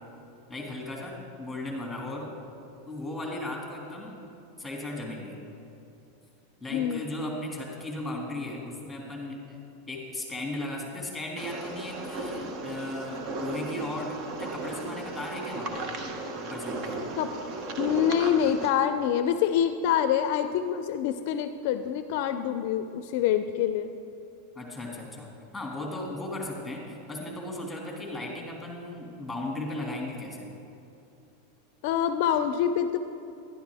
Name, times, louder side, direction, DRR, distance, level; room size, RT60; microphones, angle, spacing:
voice 1, 0.5-2.3 2.9-4.2 4.6-5.5 6.6-9.6 9.9-15.9 16.4-17.0 24.6-30.6, left 1 dB, 5° left, -1 dB, 2.1 m, -36 dB
voice 2, 6.7-7.0 17.2-17.3 17.8-23.9 31.8-33.0, left 9 dB, 60° left, 9 dB, 0.4 m, -26 dB
sound 1, 11.4-18.7, right 2 dB, 45° right, 1.0 m, -35 dB
11.5 x 11.0 x 3.5 m, 2.9 s
supercardioid pair, 125°, 0 cm